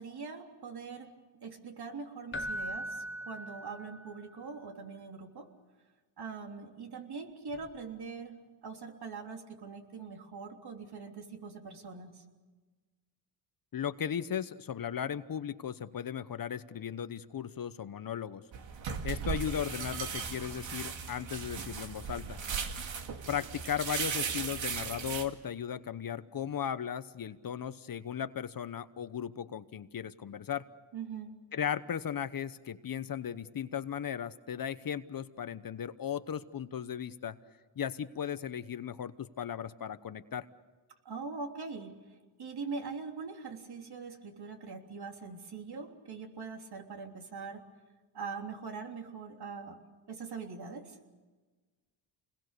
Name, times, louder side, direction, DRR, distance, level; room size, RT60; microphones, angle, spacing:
voice 1, 0.0-5.5 6.2-12.2 30.9-31.3 41.1-42.0 42.4-47.6 48.1-49.8 50.1-51.0, right 4 dB, 55° right, 3 dB, 3.5 m, -42 dB
Keyboard (musical), 2.3-4.3 7.5-7.7, equal, 25° left, 1.1 m, -39 dB
voice 2, 13.7-18.4 19.0-22.4 23.3-30.6 31.5-37.4 37.8-40.4, left 8 dB, 45° left, 13 dB, 1.0 m, -36 dB
sound 1, 18.5-25.2, right 6 dB, 70° right, 2.5 m, -37 dB
28.5 x 21.0 x 6.8 m, 1.3 s
cardioid pair, 90°, 47 cm